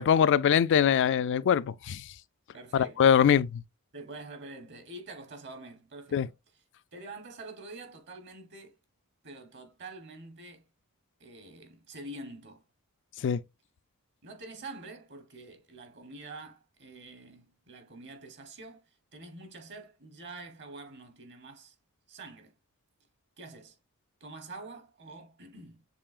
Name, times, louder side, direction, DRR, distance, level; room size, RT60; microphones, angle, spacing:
voice 1, 0.0-2.1 2.7-3.6 6.1-6.3 13.2-13.4, left 8 dB, 55° left, 0.3 m, -23 dB
voice 2, 2.5-3.0 3.9-6.3 6.9-8.7 9.2-10.6 11.2-12.6 14.2-18.8 19.1-21.7 22.1-22.5 23.4-23.8 24.2-25.9, right 2 dB, 55° right, 1.1 m, -46 dB
6.8 x 3.1 x 2.4 m
head